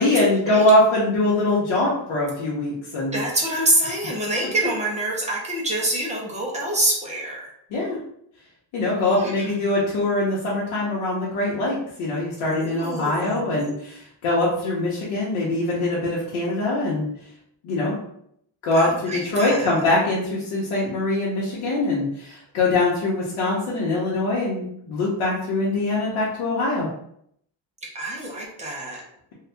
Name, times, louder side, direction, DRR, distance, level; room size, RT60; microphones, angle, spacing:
voice 1, 0.0-3.2 7.7-8.0 8.7-17.1 17.6-18.0 18.6-26.9, left 2 dB, 80° left, -6 dB, 1.0 m, -23 dB
voice 2, 3.1-7.5 9.1-9.5 12.5-13.7 18.7-19.7 27.9-29.0, right 1 dB, 15° right, -3 dB, 0.5 m, -26 dB
2.7 x 2.4 x 3.4 m, 0.71 s
cardioid pair, 170°, 47 cm